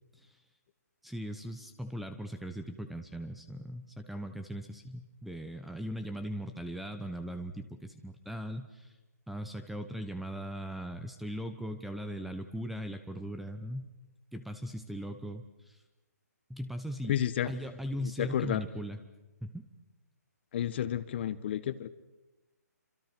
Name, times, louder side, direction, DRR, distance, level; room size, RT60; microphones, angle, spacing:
voice 1, 1.0-8.9 9.3-13.9 14.3-15.8 16.5-17.2 17.4-19.0 19.4-19.7, equal, ahead, 9 dB, 1.0 m, -39 dB
voice 2, 17.1-17.5 18.2-18.6 20.5-21.9, left 10 dB, 40° left, 14 dB, 1.2 m, -31 dB
28.0 x 26.0 x 6.1 m, 1.1 s
hypercardioid pair, 155°, 9 cm